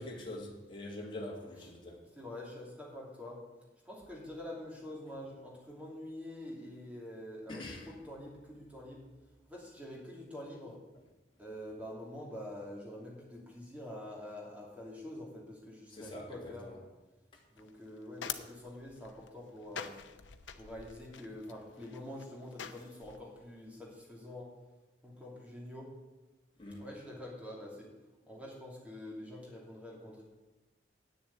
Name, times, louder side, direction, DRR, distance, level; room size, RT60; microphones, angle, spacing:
voice 1, 0.0-2.0 7.5-7.9 15.9-16.8 26.6-26.8, left 1 dB, 25° left, 1.9 m, -44 dB
voice 2, 2.1-3.4 3.8-9.1 9.5-10.8 11.4-16.7 17.5-20.0 20.6-24.5 25.0-25.9 26.8-27.9 28.3-30.2, left 1 dB, 10° right, 2.8 m, -46 dB
sound 1, 17.6-23.2, left 8 dB, 90° left, 0.8 m, -46 dB
9.1 x 7.0 x 8.2 m
head